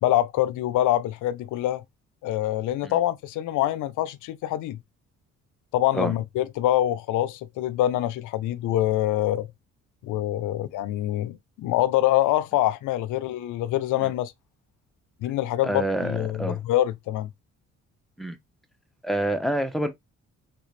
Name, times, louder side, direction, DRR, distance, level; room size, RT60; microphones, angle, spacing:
voice 1, 0.0-1.8 2.2-4.8 5.7-9.5 10.0-14.3 15.2-17.3, left 14 dB, 80° left, 0.5 m, -25 dB
voice 2, 15.6-16.6 18.2-18.4 19.0-19.9, right 1 dB, ahead, 0.7 m, -27 dB
3.3 x 2.4 x 3.2 m
cardioid pair, 90°, 30 cm